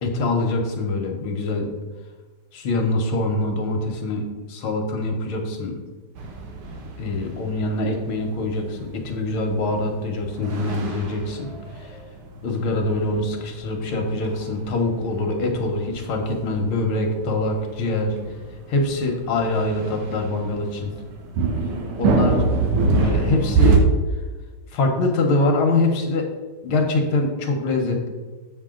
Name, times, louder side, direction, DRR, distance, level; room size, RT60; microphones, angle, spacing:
voice 1, 0.0-1.7 2.5-5.7 7.0-11.5 11.8-11.9 12.4-18.2 18.7-20.9 22.0-22.5 22.9-23.8 24.7-26.3 26.6-28.1, left 2 dB, 70° left, 3 dB, 1.9 m, -24 dB
sound 1, 6.2-23.8, right 4 dB, 90° right, 2.0 m, -26 dB
7.5 x 6.6 x 3.8 m, 1.3 s
omnidirectional pair, 2.4 m